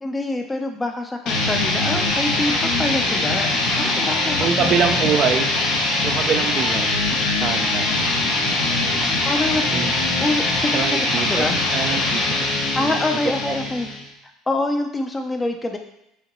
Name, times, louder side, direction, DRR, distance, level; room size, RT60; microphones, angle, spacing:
voice 1, 0.0-5.1 9.3-9.6 10.2-11.0 11.3-11.5 12.7-13.9 14.5-15.8, left 2 dB, 20° left, 4 dB, 0.6 m, -26 dB
sound 1, 1.3-14.1, left 2 dB, 65° left, 1.0 m, -22 dB
voice 2, 4.4-5.5 6.0-7.0 7.4-7.9 9.7-9.9 10.7-11.5 11.7-12.4 12.8-13.0 13.5-13.6, right 6 dB, 50° right, 6 dB, 0.5 m, -24 dB
4.9 x 2.9 x 3.0 m, 0.83 s
hypercardioid pair, 80°, 0 cm